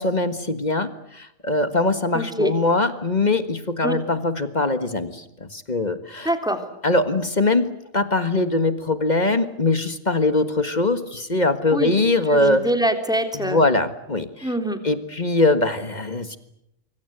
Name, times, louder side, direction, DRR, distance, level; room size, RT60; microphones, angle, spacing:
voice 1, 0.0-6.3 6.8-12.7 13.4-14.5 14.8-16.4, left 2 dB, 35° left, 10 dB, 1.7 m, -22 dB
voice 2, 2.1-2.5 3.8-4.0 6.2-6.7 11.7-12.0 12.3-13.6 14.4-14.8, right 1 dB, 5° right, 6 dB, 3.3 m, -24 dB
25.0 x 24.5 x 8.0 m, 0.78 s
omnidirectional pair, 1.3 m